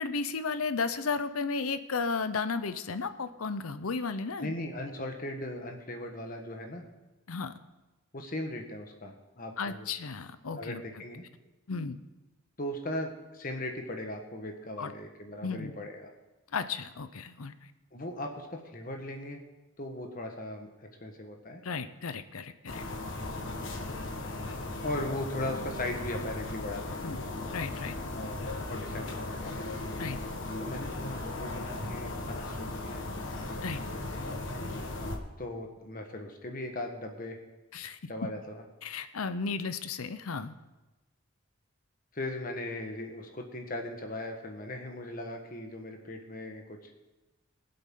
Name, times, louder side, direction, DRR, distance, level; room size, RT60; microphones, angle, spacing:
voice 1, 0.0-4.5 7.3-7.5 9.6-10.8 11.7-12.0 14.8-14.9 15.4-15.7 16.5-17.7 21.6-22.8 27.0-27.2 27.5-27.9 30.0-30.2 33.6-33.8 37.7-38.0 38.8-40.5, left 4 dB, 85° left, 12 dB, 0.7 m, -34 dB
voice 2, 4.4-6.9 8.1-9.9 10.6-11.2 12.6-16.1 17.9-19.4 19.8-21.6 24.8-27.0 28.1-28.4 28.7-29.8 30.6-33.0 35.4-37.4 38.1-38.6 42.1-46.9, left 1 dB, 40° left, 3 dB, 1.4 m, -38 dB
sound 1, 22.7-35.2, left 2 dB, 60° left, 1.4 m, -37 dB
23.0 x 7.8 x 3.8 m, 1.1 s
head